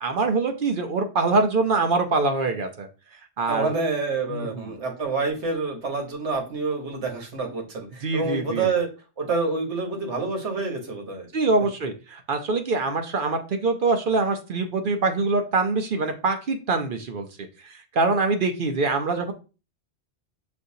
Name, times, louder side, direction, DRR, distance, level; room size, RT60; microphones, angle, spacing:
voice 1, 0.0-2.9 3.4-3.7 4.3-4.7 8.0-8.7 11.3-17.3 17.6-19.3, right 3 dB, 55° right, 5 dB, 0.7 m, -24 dB
voice 2, 3.5-8.9 9.2-11.3, right 4 dB, 80° right, 2 dB, 1.4 m, -27 dB
6.3 x 2.6 x 2.7 m, 0.32 s
omnidirectional pair, 1.2 m